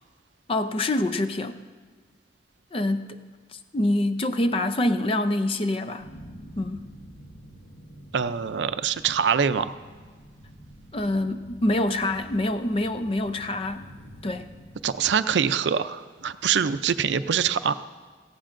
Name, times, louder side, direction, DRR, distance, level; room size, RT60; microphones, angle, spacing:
voice 1, 0.5-1.6 2.7-3.2 3.5-6.1 6.6-6.9 10.9-13.9 14.2-14.5, left 1 dB, 30° left, 9 dB, 0.5 m, -26 dB
sound 1, 6.0-15.0, equal, 65° left, 1.6 m, -47 dB
voice 2, 8.1-9.7 14.8-17.7, right 7 dB, 85° right, 13 dB, 0.5 m, -24 dB
17.5 x 15.0 x 2.6 m, 1.5 s
head